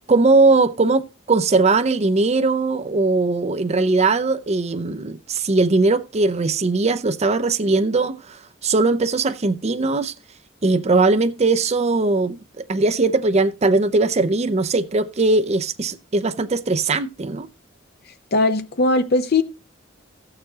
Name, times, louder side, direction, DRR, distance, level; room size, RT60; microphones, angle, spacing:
voice 1, 0.1-10.1 10.6-17.5, right 3 dB, 35° right, 0.6 m, -20 dB
voice 2, 18.3-19.4, left 2 dB, 55° left, 0.7 m, -19 dB
16.0 x 6.8 x 2.8 m
head